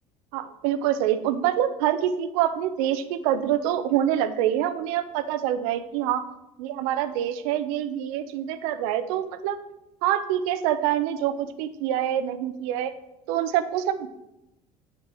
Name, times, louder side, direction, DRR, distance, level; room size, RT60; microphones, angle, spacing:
voice 1, 0.3-6.3 6.6-9.6 10.0-12.9 13.3-14.1, right 11 dB, 65° right, 10 dB, 0.8 m, -26 dB
9.8 x 4.5 x 6.8 m, 0.90 s
hypercardioid pair, 65°, 19 cm